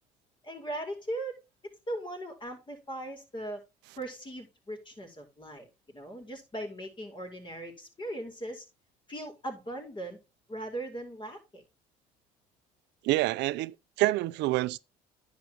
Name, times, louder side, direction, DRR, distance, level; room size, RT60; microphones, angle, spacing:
voice 1, 0.4-1.4 1.9-3.6 4.0-8.6 9.1-10.2 10.5-11.6, right 1 dB, 25° left, 4.6 m, -39 dB
voice 2, 13.0-14.8, right 18 dB, 75° right, 0.7 m, -27 dB
10.5 x 8.3 x 3.0 m
supercardioid pair, 90°, 18 cm